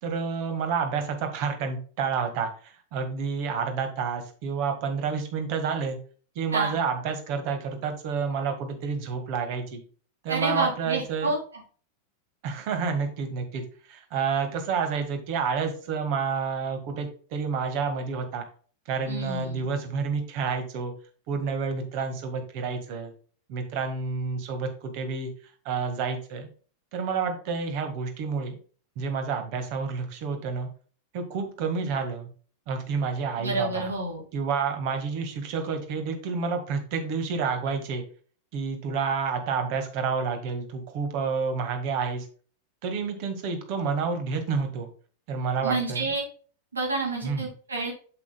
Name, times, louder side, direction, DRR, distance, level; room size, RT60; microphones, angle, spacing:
voice 1, 0.0-6.0 6.4-9.8 10.2-11.3 12.4-18.4 18.9-20.9 21.3-23.1 23.5-26.5 26.9-28.6 29.0-30.7 31.1-32.3 32.7-33.9 34.3-38.0 38.5-42.3 42.8-44.9 45.3-46.1 47.2-47.5, right 5 dB, 45° right, 6 dB, 1.8 m, -29 dB
voice 2, 10.3-11.4 19.1-19.7 33.4-34.2 45.6-46.2 46.7-47.9, right 2 dB, 75° right, 1 dB, 2.5 m, -29 dB
8.1 x 7.1 x 2.3 m, 0.42 s
figure-of-eight pair, 90°, 0 cm